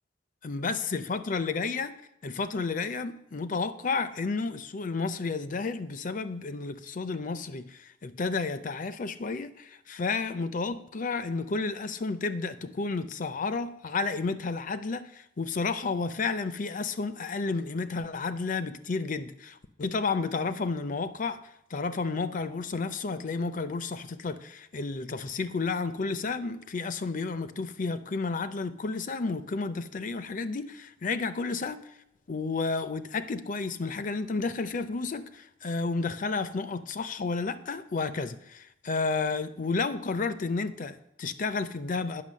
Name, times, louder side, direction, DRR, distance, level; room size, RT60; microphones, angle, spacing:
voice 1, 0.4-1.9 2.2-21.4 21.7-31.8 32.3-42.2, left 4 dB, 45° left, 0.5 m, -31 dB
9.1 x 6.1 x 6.2 m
head